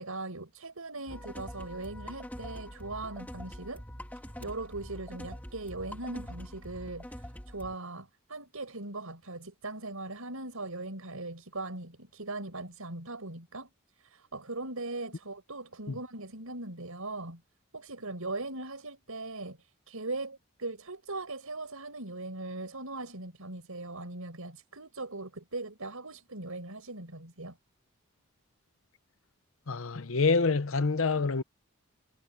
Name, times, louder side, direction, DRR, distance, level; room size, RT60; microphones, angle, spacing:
voice 1, 0.0-3.8 4.4-13.7 14.0-17.4 17.7-27.6, right 2 dB, 90° right, 5.9 m, -40 dB
sound 1, 1.1-7.7, equal, 10° left, 2.6 m, -44 dB
voice 2, 29.7-31.4, left 4 dB, 75° left, 0.8 m, -27 dB
head